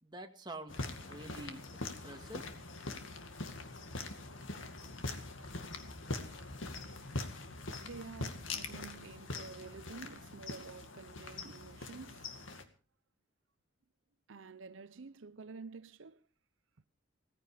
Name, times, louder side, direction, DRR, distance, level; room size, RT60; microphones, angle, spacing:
voice 1, 0.0-1.6 2.0-2.5, right 1 dB, 20° right, 2.0 m, -47 dB
sound 1, 0.7-12.6, left 3 dB, 80° left, 2.2 m, -43 dB
voice 2, 7.8-12.4 14.3-16.2, right 4 dB, 75° right, 0.7 m, -50 dB
18.0 x 15.0 x 5.0 m
head